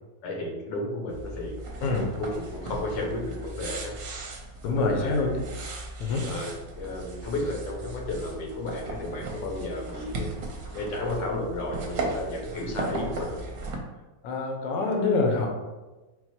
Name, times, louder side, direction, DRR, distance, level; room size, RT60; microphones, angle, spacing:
voice 1, 0.2-1.6 2.2-3.9 4.6-5.3 6.2-10.4 10.7-13.4, left 2 dB, 85° left, 0 dB, 1.5 m, -33 dB
sound 1, 1.1-13.8, right 2 dB, 70° right, 1.2 m, -37 dB
voice 2, 4.6-5.3 6.0-6.3 14.2-15.5, left 3 dB, 65° left, 1 dB, 1.0 m, -25 dB
4.4 x 2.0 x 4.1 m, 1.2 s
omnidirectional pair, 1.9 m